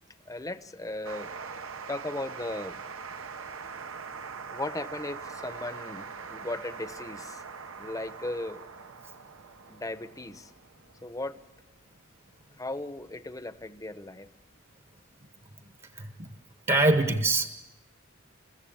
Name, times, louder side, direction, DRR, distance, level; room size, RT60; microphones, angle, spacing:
voice 1, 0.3-1.3 1.9-2.8 4.5-7.4 7.8-8.6 9.7-10.5 11.0-11.4 12.6-14.3, left 2 dB, 15° left, 12 dB, 0.8 m, -36 dB
sound 1, 1.0-14.0, right 5 dB, 80° right, 1.0 m, -43 dB
voice 2, 15.9-16.3 16.7-17.5, right 2 dB, 30° right, 8 dB, 1.0 m, -24 dB
29.0 x 15.0 x 8.7 m, 1.1 s
head